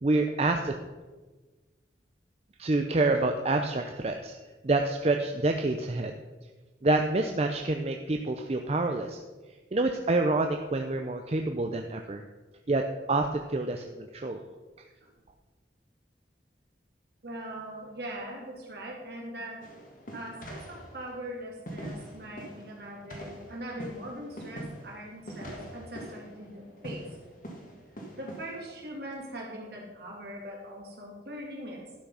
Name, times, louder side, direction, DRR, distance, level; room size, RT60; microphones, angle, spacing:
voice 1, 0.0-0.7 2.6-4.4 4.6-6.1 6.8-9.2 9.7-12.2 12.7-12.8 13.1-14.4, right 2 dB, 35° right, 4 dB, 0.5 m, -27 dB
voice 2, 17.2-19.6 20.1-27.1 28.2-31.8, right 1 dB, 60° right, -1 dB, 2.6 m, -41 dB
sound 1, 19.6-29.2, right 1 dB, 50° left, 1.7 m, -44 dB
12.0 x 6.0 x 5.6 m, 1.3 s
head